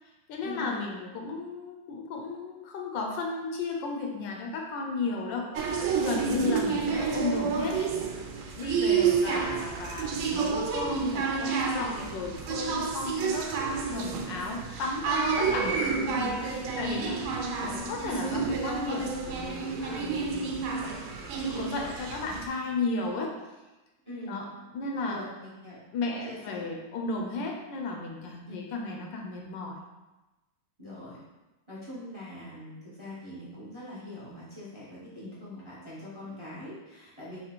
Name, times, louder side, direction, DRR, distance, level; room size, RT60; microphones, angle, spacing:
voice 1, 0.3-5.6 6.0-8.0 8.5-13.6 13.9-17.3 17.6-23.4 24.3-25.2 25.9-29.8, left 3 dB, 75° left, 1 dB, 1.3 m, -34 dB
sound 1, 5.5-22.5, right 5 dB, 85° right, 1.4 m, -30 dB
voice 2, 8.9-9.3 15.4-15.7 24.0-24.4 25.0-25.8 26.1-26.7 28.5-28.6 30.8-31.2 31.7-37.4, left 1 dB, 20° right, -8 dB, 0.9 m, -42 dB
4.1 x 3.0 x 4.4 m, 1.1 s
omnidirectional pair, 2.1 m